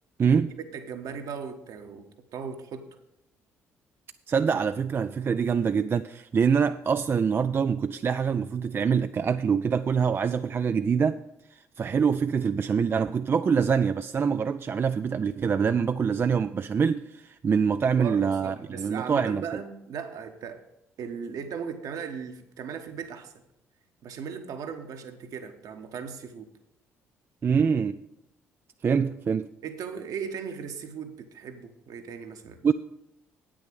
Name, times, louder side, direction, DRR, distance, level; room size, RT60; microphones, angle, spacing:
voice 1, 0.2-0.5 4.3-11.2 11.5-19.4 27.4-28.0 28.8-29.5 32.6-32.7, right 6 dB, 30° right, 10 dB, 0.3 m, -25 dB
voice 2, 0.7-2.9 17.8-20.6 21.0-23.3 24.0-26.5 29.6-32.7, right 6 dB, 55° right, 7 dB, 1.1 m, -37 dB
9.0 x 6.3 x 7.7 m, 0.84 s
figure-of-eight pair, 45°, 7 cm